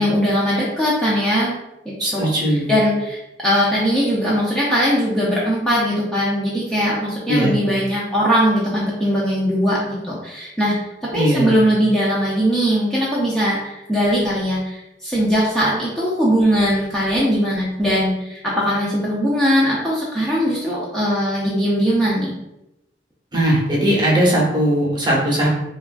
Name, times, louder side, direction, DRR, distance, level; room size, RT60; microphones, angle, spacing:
voice 1, 0.0-1.5 1.9-10.8 11.0-22.3, equal, 5° left, -8 dB, 0.4 m, -20 dB
voice 2, 2.0-2.7 7.3-7.6 11.1-11.5 23.3-25.5, right 1 dB, 25° right, -5 dB, 0.7 m, -18 dB
2.9 x 2.3 x 2.5 m, 0.90 s
head